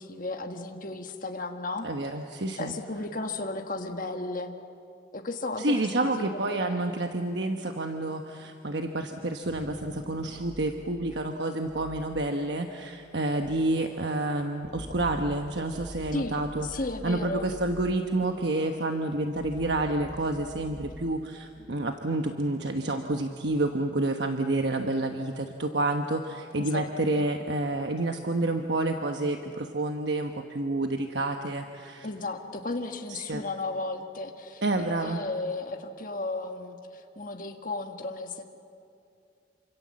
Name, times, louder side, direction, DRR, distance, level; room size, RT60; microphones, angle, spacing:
voice 1, 0.0-1.9 2.6-4.6 5.1-6.8 16.1-17.5 26.6-27.3 32.0-38.4, left 2 dB, 45° left, 4 dB, 1.5 m, -34 dB
voice 2, 1.8-2.8 5.6-16.7 17.0-32.1 33.1-33.4 34.6-35.3, right 2 dB, 65° right, 5 dB, 1.2 m, -29 dB
sound 1, 9.4-22.0, equal, ahead, 1.1 m, -46 dB
28.0 x 26.0 x 7.6 m, 2.5 s
head